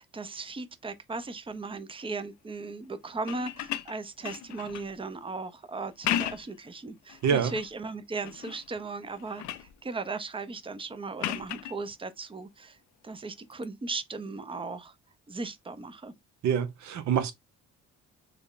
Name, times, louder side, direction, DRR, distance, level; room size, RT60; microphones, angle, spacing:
voice 1, 0.0-12.8 13.0-14.9 15.3-16.1, right 3 dB, 20° right, 0.6 m, -37 dB
sound 1, 3.2-5.0 5.9-6.6 7.1-7.7 8.2-8.7 9.0-9.7 11.2-11.8 13.5-13.7, left 12 dB, 70° left, 0.5 m, -35 dB
voice 2, 7.2-7.5 16.4-17.3, right 7 dB, 65° right, 0.8 m, -26 dB
3.4 x 2.1 x 3.8 m
cardioid pair, 90°, 30 cm